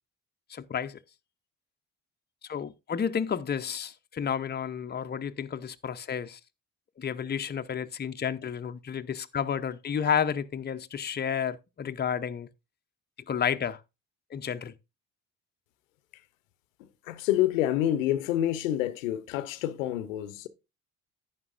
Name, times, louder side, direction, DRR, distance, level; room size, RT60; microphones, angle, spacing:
voice 1, 0.5-1.0 2.4-6.4 7.0-12.5 13.3-13.8 14.3-14.7, left 7 dB, 25° left, 0.7 m, -31 dB
voice 2, 17.0-20.5, left 12 dB, 85° left, 0.7 m, -27 dB
11.0 x 8.9 x 2.5 m
hypercardioid pair, 50°, 38 cm